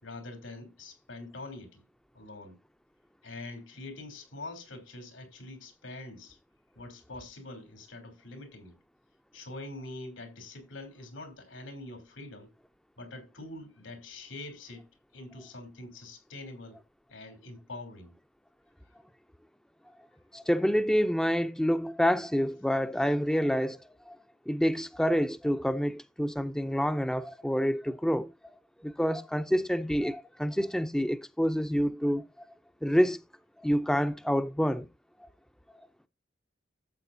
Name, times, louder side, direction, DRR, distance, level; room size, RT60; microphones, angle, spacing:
voice 1, 0.0-1.8 2.1-2.6 3.2-6.4 6.7-8.7 9.3-12.5 13.0-14.9 15.1-16.8 17.1-18.1, left 2 dB, 85° left, 3.3 m, -44 dB
voice 2, 20.3-23.8 24.1-24.2 24.5-28.3 28.8-32.2 32.8-33.2 33.6-34.9, equal, 5° left, 0.4 m, -27 dB
13.0 x 7.6 x 2.6 m
head